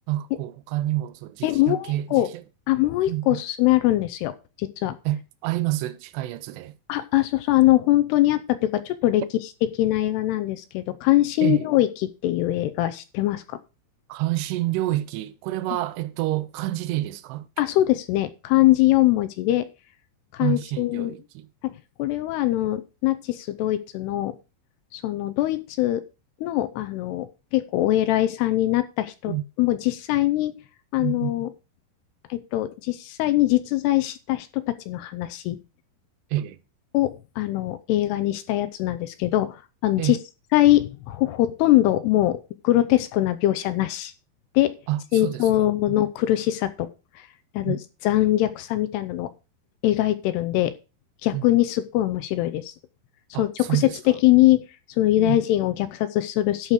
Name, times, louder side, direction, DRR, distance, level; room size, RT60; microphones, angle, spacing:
voice 1, 0.1-2.3 3.1-3.4 5.1-6.7 11.4-11.7 14.1-17.5 20.4-21.5 29.3-29.4 31.0-31.3 36.3-36.6 40.0-40.2 44.9-45.5 47.7-47.8 51.3-51.4 53.3-54.2 55.2-55.4, right 15 dB, 80° right, 2.6 m, -28 dB
voice 2, 1.4-2.3 2.7-5.0 6.9-9.2 9.7-13.6 17.6-19.7 20.3-21.2 22.0-24.4 24.9-26.0 26.4-30.5 30.9-31.5 32.3-35.6 36.9-40.2 40.5-42.4 42.6-44.1 44.6-44.8 45.1-46.9 47.2-47.3 47.5-49.3 49.8-50.7 51.2-52.7 53.4-53.9 54.2-54.6 55.0-56.7, left 15 dB, 80° left, 2.4 m, -22 dB
11.5 x 5.1 x 6.5 m
omnidirectional pair, 5.3 m